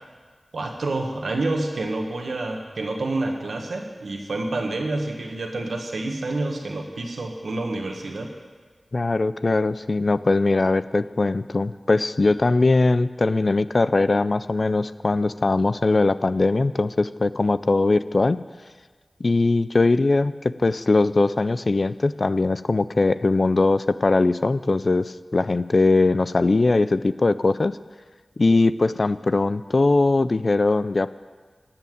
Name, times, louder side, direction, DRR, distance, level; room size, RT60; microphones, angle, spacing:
voice 1, 0.5-8.3, right 2 dB, 85° right, 3 dB, 1.5 m, -28 dB
voice 2, 8.9-18.4 19.2-27.8 28.4-31.2, left 3 dB, 55° left, 15 dB, 0.4 m, -21 dB
13.5 x 5.8 x 9.4 m, 1.5 s
cardioid pair, 45°, 0 cm